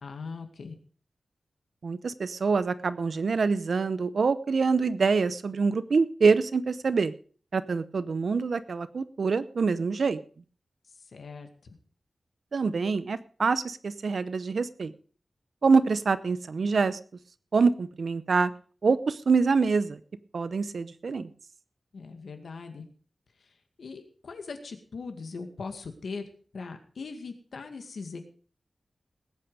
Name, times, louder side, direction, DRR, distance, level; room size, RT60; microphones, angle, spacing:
voice 1, 0.0-0.8 11.1-11.8 21.9-22.8 23.8-26.3 26.5-28.2, left 4 dB, 80° left, 6 dB, 2.1 m, -40 dB
voice 2, 1.8-7.1 7.5-10.2 12.5-14.9 15.6-17.0 17.5-18.5 18.8-20.0 20.3-21.3, right 4 dB, 65° right, 15 dB, 0.8 m, -25 dB
19.0 x 8.8 x 5.0 m, 0.42 s
wide cardioid pair, 130°, 0 cm